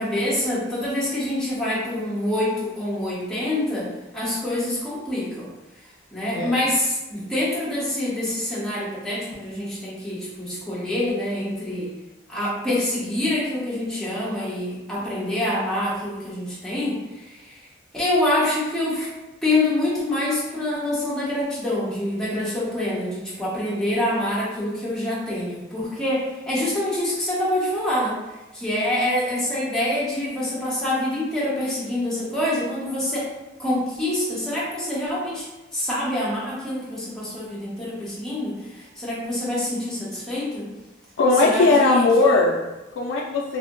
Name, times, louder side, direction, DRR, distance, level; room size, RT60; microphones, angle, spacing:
voice 1, 0.0-3.9 4.1-5.5 6.1-11.9 12.3-17.7 17.9-19.1 19.4-28.2 28.5-33.3 33.6-35.5 35.7-40.7 41.4-42.0, left 1 dB, 5° left, -8 dB, 0.9 m, -26 dB
voice 2, 41.2-43.6, left 3 dB, 90° left, -2 dB, 0.3 m, -19 dB
2.6 x 2.1 x 3.7 m, 1.1 s
head